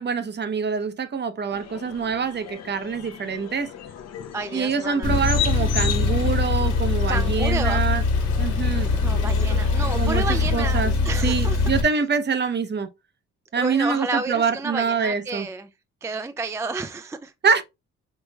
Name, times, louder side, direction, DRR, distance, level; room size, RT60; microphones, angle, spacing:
voice 1, 0.0-3.7 4.5-8.0 8.4-8.9 10.0-10.9 11.2-12.9 13.5-15.5 17.4-17.6, right 5 dB, 35° right, 0.7 m, -25 dB
sound 1, 1.5-10.5, left 9 dB, 60° left, 0.7 m, -36 dB
voice 2, 4.3-5.2 7.1-7.8 9.0-11.6 13.5-15.7 16.0-17.3, right 3 dB, 10° right, 0.3 m, -30 dB
Male speech man speaking / Car / Idling, 5.0-11.8, left 3 dB, 75° left, 1.3 m, -22 dB
5.3 x 3.0 x 2.2 m
cardioid pair, 90°, 30 cm